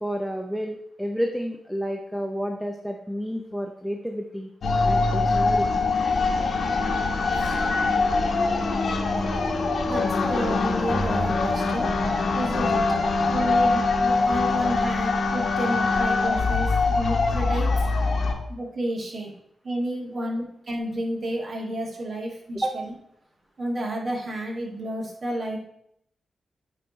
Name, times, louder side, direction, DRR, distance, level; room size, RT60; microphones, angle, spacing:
voice 1, 0.0-4.5 4.8-5.8 12.9-13.0 20.1-20.3 22.5-22.8, equal, ahead, 2 dB, 0.7 m, -30 dB
sound 1, 4.6-18.3, left 3 dB, 65° left, 1.0 m, -23 dB
voice 2, 9.8-11.9 12.3-12.8 13.3-17.7 18.5-19.3 19.6-22.6 23.6-25.6, right 1 dB, 55° right, -1 dB, 1.8 m, -31 dB
8.9 x 3.4 x 4.1 m, 0.73 s
cardioid pair, 70°, 0 cm